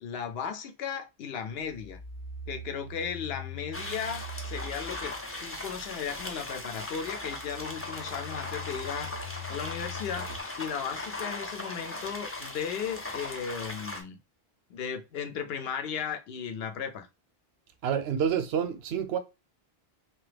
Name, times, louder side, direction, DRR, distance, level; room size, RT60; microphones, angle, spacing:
voice 1, 0.0-2.0 2.5-10.3 10.6-14.2 14.7-17.1, left 7 dB, 80° left, 0.8 m, -36 dB
sound 1, 1.5-10.4, left 2 dB, 45° left, 0.7 m, -43 dB
sound 2, 3.7-14.0, left 2 dB, 20° left, 0.3 m, -38 dB
voice 2, 17.8-19.2, right 8 dB, 85° right, 0.8 m, -28 dB
2.8 x 2.2 x 3.3 m
omnidirectional pair, 1.0 m